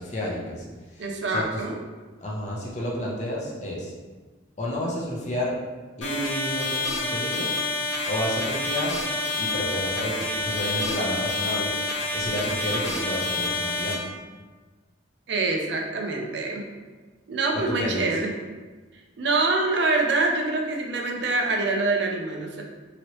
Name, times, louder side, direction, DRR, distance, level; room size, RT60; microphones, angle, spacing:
voice 1, 0.0-1.6 2.2-3.9 4.6-5.6 6.0-7.5 8.1-9.0 9.4-11.8 12.1-14.1 17.7-18.1, left 1 dB, 35° left, -4 dB, 0.6 m, -31 dB
voice 2, 1.0-1.8 15.3-16.7 17.3-18.3 19.2-22.6, right 3 dB, 60° right, 1 dB, 0.5 m, -25 dB
sound 1, 6.0-13.9, left 2 dB, 70° left, 1.0 m, -28 dB
2.9 x 2.8 x 2.9 m, 1.3 s
head